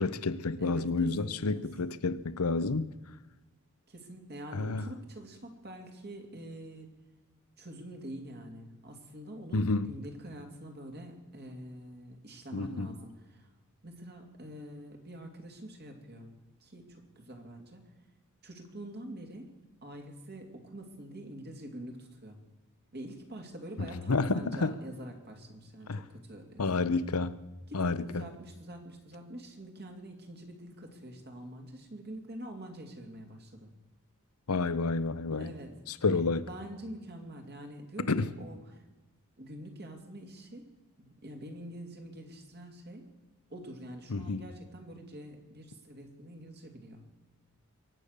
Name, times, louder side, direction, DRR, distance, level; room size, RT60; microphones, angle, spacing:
voice 1, 0.0-2.9 4.5-4.8 9.5-9.9 12.5-12.9 24.1-24.7 25.9-26.0 26.6-27.3 27.7-28.0 34.5-35.5 36.0-36.5 38.1-38.3 44.1-44.4, left 3 dB, 80° left, 0.8 m, -29 dB
voice 2, 0.6-1.7 3.9-6.9 7.6-13.5 13.8-17.9 18.4-19.5 19.8-22.4 22.9-27.0 27.7-33.7 35.3-35.8 36.1-38.8 39.4-40.7 41.0-43.1 43.5-47.0, right 1 dB, 50° right, 2.7 m, -46 dB
23.0 x 9.2 x 6.7 m
head